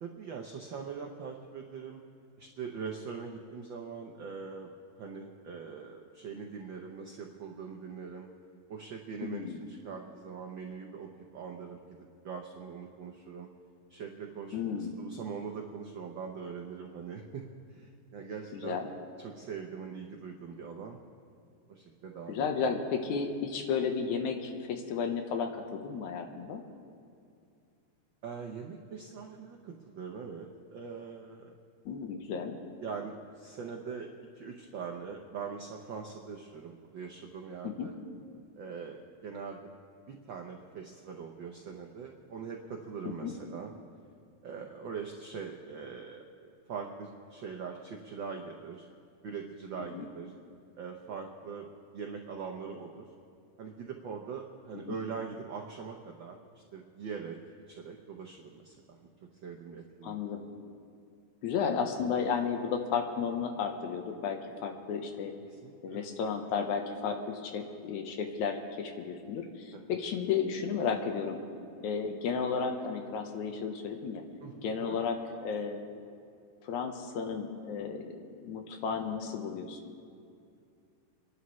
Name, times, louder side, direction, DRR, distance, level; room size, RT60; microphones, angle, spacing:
voice 1, 0.0-2.0 2.4-4.7 5.0-8.3 8.7-13.5 13.9-17.4 17.7-18.8 19.2-21.0 21.7-22.7 28.2-31.5 32.8-34.1 34.3-37.9 38.6-39.7 40.1-43.7 44.4-48.8 49.2-50.3 50.8-51.7 51.9-53.1 53.6-57.4 57.7-58.7 59.0-59.1 59.4-60.1 65.5-66.1 69.7-69.8 74.4-75.0, right 6 dB, 85° right, 1 dB, 1.0 m, -42 dB
voice 2, 9.2-9.6 14.5-15.0 18.5-18.9 22.3-26.6 31.9-32.6 37.6-37.9 43.1-43.3 49.9-50.1 54.9-55.0 60.0-60.5 61.4-65.3 65.8-71.4 71.8-74.2 74.6-75.9 76.6-79.8, left 6 dB, 90° left, 5 dB, 2.5 m, -33 dB
29.0 x 11.5 x 3.1 m, 2.4 s
omnidirectional pair, 3.3 m